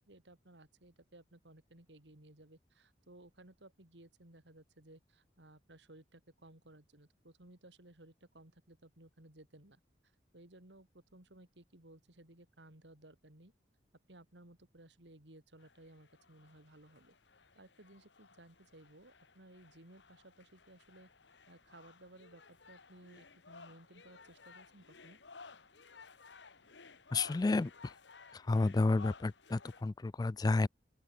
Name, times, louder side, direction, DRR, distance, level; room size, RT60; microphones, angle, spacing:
voice 1, 0.0-9.8 10.3-13.5 14.1-17.1 17.5-21.1 21.5-25.2, right 1 dB, 75° right, 3.1 m, -59 dB
sound 1, 15.6-29.8, left 4 dB, 80° left, 1.9 m, -57 dB
voice 2, 27.1-27.9 28.3-30.7, left 3 dB, 20° left, 0.3 m, -31 dB
open air
head